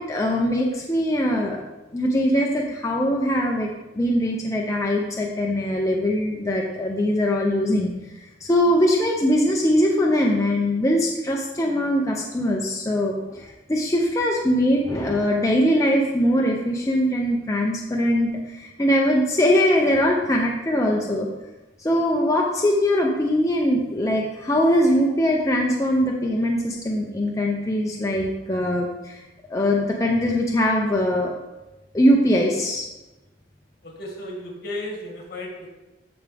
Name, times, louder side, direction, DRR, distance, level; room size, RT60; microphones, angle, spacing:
voice 1, 0.0-1.6 1.9-3.7 3.9-7.9 8.2-21.3 21.8-29.2 29.5-31.3 31.9-32.8, equal, 20° left, -1 dB, 0.7 m, -21 dB
voice 2, 33.8-35.7, left 1 dB, 55° left, -1 dB, 2.2 m, -34 dB
14.0 x 4.9 x 3.5 m, 1.1 s
head